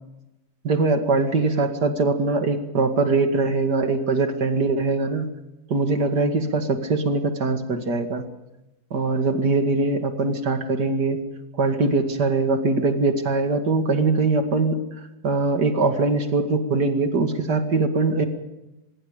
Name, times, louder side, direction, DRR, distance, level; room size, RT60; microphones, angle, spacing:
voice 1, 0.6-5.3 5.7-8.3 8.9-11.2 11.6-14.8 15.2-18.2, right 3 dB, 80° right, 6 dB, 2.8 m, -22 dB
25.0 x 22.5 x 5.1 m, 0.96 s
omnidirectional pair, 1.7 m